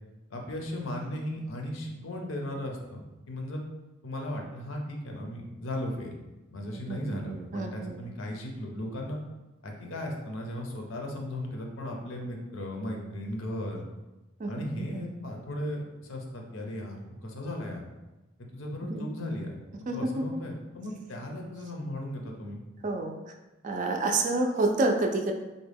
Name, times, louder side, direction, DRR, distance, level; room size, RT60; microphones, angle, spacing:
voice 1, 0.3-3.6 4.0-6.1 6.5-9.2 9.6-13.8 14.5-17.9 18.5-22.6, left 1 dB, 85° left, 1 dB, 0.6 m, -36 dB
voice 2, 6.7-8.0 14.4-15.0 18.9-19.0 19.9-20.4 22.8-23.2 23.6-25.3, right 2 dB, 40° right, 3 dB, 0.4 m, -29 dB
3.7 x 2.1 x 3.4 m, 1.1 s
head